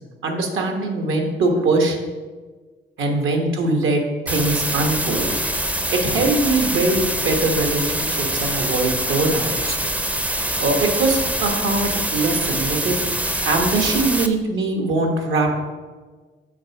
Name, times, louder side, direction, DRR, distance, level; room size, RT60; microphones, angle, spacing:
voice 1, 0.2-2.0 3.0-5.3 5.9-9.8 10.6-13.0 13.4-15.5, right 2 dB, 75° right, 2 dB, 1.2 m, -21 dB
sound 1, 4.3-14.3, right 1 dB, 5° right, 0.4 m, -24 dB
6.3 x 4.3 x 5.7 m, 1.4 s
cardioid pair, 115°, 20 cm